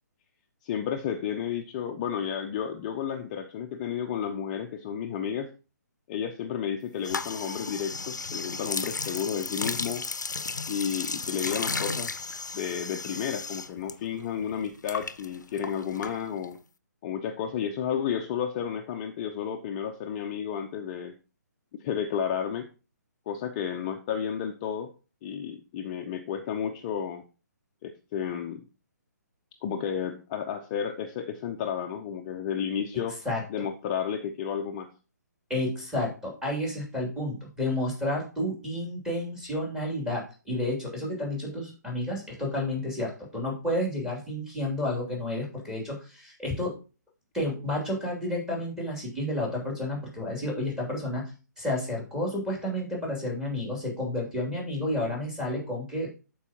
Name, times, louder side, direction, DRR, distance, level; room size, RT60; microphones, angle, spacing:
voice 1, 0.6-5.5 6.1-10.0 10.7-12.2 12.5-16.6 17.0-21.1 21.8-22.7 23.3-24.9 25.2-27.2 27.8-28.6 29.6-33.2 33.5-34.9, left 8 dB, 30° left, 4 dB, 0.7 m, -32 dB
sound 1, 7.0-13.9 14.2-16.6, left 4 dB, 75° left, 0.7 m, -34 dB
voice 2, 35.5-46.8 47.3-51.3 51.6-56.1, left 1 dB, 5° right, -2 dB, 2.9 m, -31 dB
12.5 x 4.7 x 2.9 m, 0.33 s
figure-of-eight pair, 135°, 10 cm